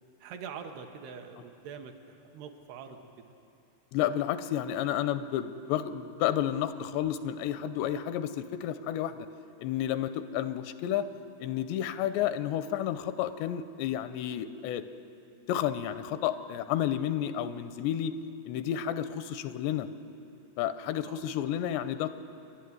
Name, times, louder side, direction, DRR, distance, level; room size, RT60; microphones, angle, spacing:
voice 1, 0.2-3.3 20.8-21.3, right 6 dB, 75° right, 5 dB, 3.0 m, -44 dB
voice 2, 3.9-9.3 9.6-11.1 11.4-14.8 15.5-18.1 18.5-19.9 20.6-22.1, left 11 dB, 90° left, 12 dB, 2.9 m, -31 dB
29.0 x 11.5 x 9.3 m, 2.8 s
omnidirectional pair, 4.9 m